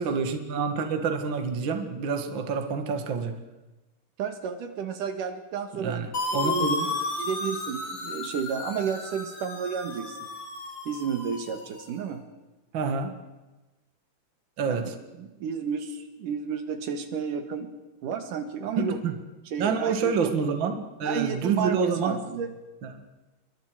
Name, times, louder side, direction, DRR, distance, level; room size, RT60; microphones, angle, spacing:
voice 1, 0.0-3.4 5.7-6.9 12.7-13.2 14.6-14.9 18.8-19.1 19.6-22.2 22.8-23.0, right 5 dB, 40° right, 6 dB, 2.2 m, -28 dB
voice 2, 4.2-6.0 6.3-6.7 7.2-10.2 10.9-12.2 14.7-14.8 15.2-17.7 18.0-19.0 19.5-20.1 21.0-22.5, right 6 dB, 80° right, 7 dB, 3.3 m, -31 dB
sound 1, 6.1-11.9, left 3 dB, 40° left, 4.4 m, -33 dB
28.0 x 23.5 x 5.0 m, 1.1 s
omnidirectional pair, 3.7 m